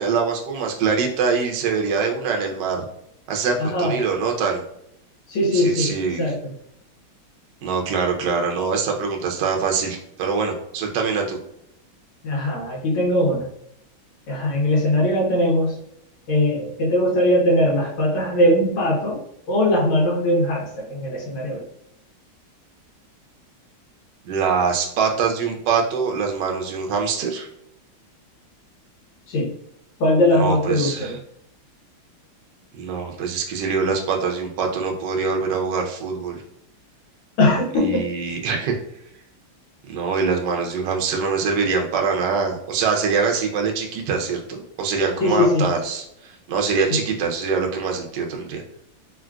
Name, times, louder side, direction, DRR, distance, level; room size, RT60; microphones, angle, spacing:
voice 1, 0.0-2.8 3.3-4.6 5.5-6.2 7.6-11.4 24.2-27.5 30.3-31.2 32.8-36.4 37.8-38.8 39.9-48.6, right 5 dB, 70° right, 2 dB, 1.1 m, -24 dB
voice 2, 3.6-4.0 5.3-5.9 6.2-6.5 12.2-13.5 14.3-15.7 16.3-19.2 19.5-21.6 29.3-29.5 30.0-31.2 37.4-38.1 45.2-45.7, left 1 dB, 85° left, -3 dB, 1.6 m, -20 dB
3.7 x 2.4 x 2.2 m, 0.76 s
omnidirectional pair, 2.3 m